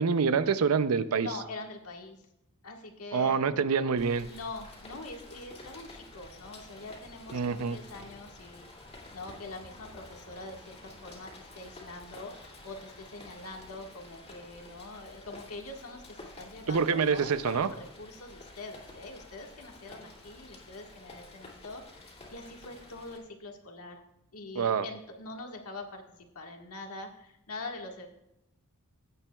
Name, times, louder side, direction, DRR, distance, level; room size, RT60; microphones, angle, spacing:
voice 1, 0.0-1.3 3.1-4.3 7.3-7.8 16.7-17.7 24.6-24.8, right 5 dB, 75° right, 13 dB, 0.5 m, -26 dB
voice 2, 1.2-2.2 2.6-3.6 4.2-8.7 9.1-12.3 12.6-24.0 24.3-26.0 26.3-28.1, left 2 dB, 75° left, 2 dB, 1.6 m, -44 dB
Rain, 4.0-23.2, left 2 dB, 30° left, 2.5 m, -50 dB
15.5 x 9.0 x 2.3 m, 0.86 s
head